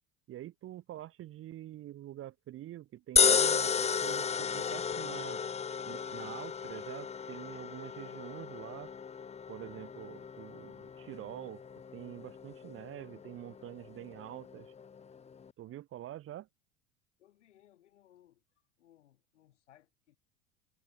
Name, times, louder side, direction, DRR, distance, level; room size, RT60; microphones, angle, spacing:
voice 1, 0.3-5.4 5.9-8.9 9.5-11.6 11.9-14.7 15.6-16.5, right 13 dB, 40° right, 1.0 m, -46 dB
sound 1, 3.2-15.5, left 6 dB, 20° left, 0.8 m, -34 dB
voice 2, 17.2-18.4 18.8-20.2, left 12 dB, 80° left, 4.9 m, -64 dB
hypercardioid pair, 80°, 35 cm